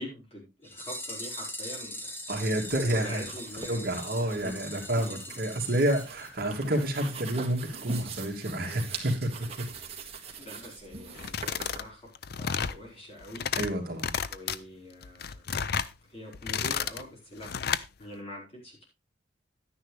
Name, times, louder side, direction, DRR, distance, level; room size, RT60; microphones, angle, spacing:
voice 1, 0.0-2.1 2.9-3.9 4.1-5.3 5.6-5.7 10.4-12.1 12.4-13.5 14.3-15.4 16.0-17.5 18.0-18.8, equal, 30° left, -1 dB, 4.9 m, -44 dB
sound 1, 0.6-6.8 7.1-7.2 7.4-7.5 7.9-8.0 8.3-8.4, left 1 dB, 10° left, 1.4 m, -41 dB
voice 2, 2.3-3.2 3.7-9.3 13.6-14.1, right 1 dB, 50° right, 2 dB, 2.4 m, -29 dB
sound 2, 2.6-11.8, right 5 dB, 35° right, 1.9 m, -43 dB
sound 3, 11.1-11.8 12.1-12.8 13.2-13.7 14.0-14.6 15.0-15.9 16.3-17.0 17.4-17.9, left 7 dB, 55° left, 0.5 m, -31 dB
11.0 x 9.9 x 3.2 m, 0.27 s
head